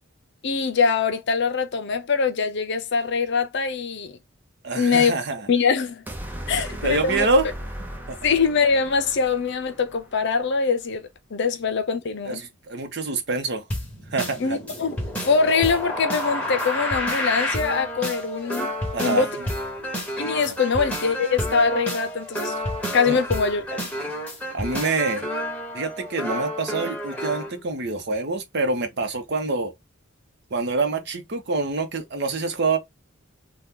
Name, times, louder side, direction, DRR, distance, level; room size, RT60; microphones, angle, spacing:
voice 1, 0.4-4.2 4.8-5.1 5.5-6.0 6.5-7.3 8.2-12.4 14.4-15.0 15.2-18.7 19.0-19.3 20.2-22.6 22.9-23.9, left 5 dB, 60° left, 0.6 m, -23 dB
voice 2, 4.6-5.5 6.5-7.5 8.1-8.2 12.3-13.7 14.1-14.6 18.9-19.3 23.1-23.2 24.5-25.2 25.7-29.7 30.5-32.8, right 3 dB, 55° right, 0.8 m, -26 dB
sound 1, 6.1-10.3, equal, 10° right, 0.6 m, -37 dB
sound 2, 13.7-27.5, equal, 5° left, 1.2 m, -30 dB
2.9 x 2.3 x 3.6 m
head